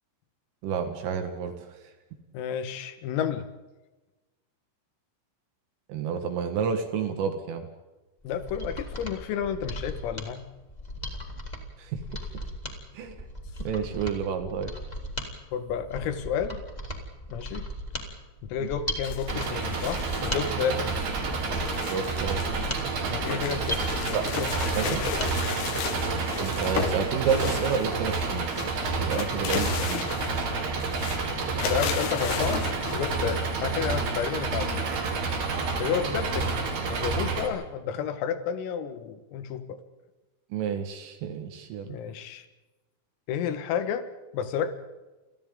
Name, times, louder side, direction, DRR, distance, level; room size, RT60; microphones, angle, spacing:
voice 1, 0.6-1.8 5.9-7.7 11.8-12.0 12.9-13.2 13.7-14.7 18.6-18.7 21.9-22.4 24.1-24.2 24.8-25.0 26.4-28.5 29.0-30.0 40.5-42.0, right 6 dB, 75° right, 6 dB, 4.3 m, -30 dB
voice 2, 2.3-3.5 8.2-10.4 15.5-16.6 17.3-17.7 18.5-20.9 23.1-23.8 24.1-24.2 31.7-34.9 35.8-36.5 36.9-39.8 41.9-42.5 43.3-44.1 44.3-44.7, left 8 dB, 85° left, 9 dB, 4.3 m, -31 dB
Mechanisms, 8.2-25.3 25.7-25.8, equal, 10° left, 2.5 m, -37 dB
sound 1, 19.0-22.5 22.8-28.2 28.5-30.5 30.8-31.2 31.6-33.5, left 9 dB, 65° left, 3.0 m, -35 dB
Engine, 19.3-37.5, right 4 dB, 55° right, 5.2 m, -29 dB
29.0 x 29.0 x 3.9 m, 1.1 s
omnidirectional pair, 5.9 m